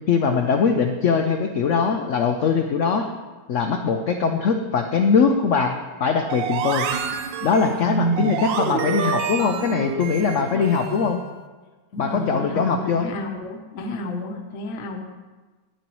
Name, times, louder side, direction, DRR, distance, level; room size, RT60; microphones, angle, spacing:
voice 1, 0.1-3.1 3.5-6.9 7.4-11.2 12.0-13.1, left 5 dB, 90° left, 5 dB, 0.6 m, -21 dB
voice 2, 4.2-4.5 7.8-8.4 10.5-11.1 11.9-15.0, right 1 dB, 50° left, 1 dB, 1.0 m, -29 dB
sound 1, 6.3-11.2, right 8 dB, 90° right, 1.4 m, -28 dB
10.5 x 9.9 x 3.0 m, 1.3 s
omnidirectional pair, 1.9 m